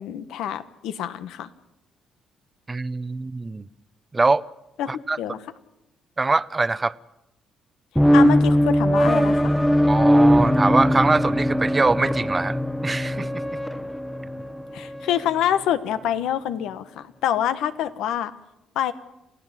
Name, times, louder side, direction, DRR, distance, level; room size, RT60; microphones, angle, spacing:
voice 1, 0.0-1.5 4.8-5.4 8.1-9.5 14.7-18.3 18.7-18.9, left 10 dB, 90° left, 1.3 m, -26 dB
voice 2, 2.7-3.7 4.1-4.5 4.9-5.2 6.2-7.0 9.9-13.4, right 3 dB, 25° right, 0.8 m, -23 dB
sound 1, 8.0-15.3, equal, ahead, 1.1 m, -20 dB
28.0 x 16.0 x 7.6 m
cardioid pair, 90°, 0 cm